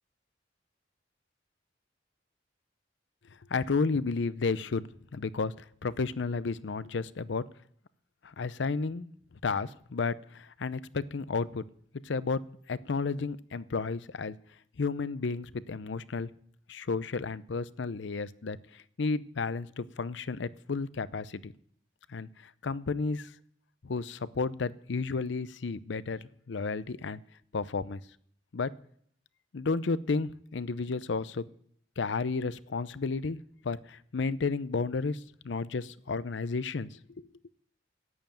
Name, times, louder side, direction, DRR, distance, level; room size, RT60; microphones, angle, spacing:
voice 1, 3.5-7.4 8.2-9.1 9.4-11.6 12.0-12.4 12.7-14.4 14.8-16.3 16.7-21.5 22.1-23.3 23.8-27.2 27.5-28.0 28.5-28.7 29.5-31.4 32.0-33.4 33.6-37.3, left 4 dB, 75° left, 17 dB, 0.6 m, -32 dB
11.0 x 9.3 x 8.9 m, 0.64 s
head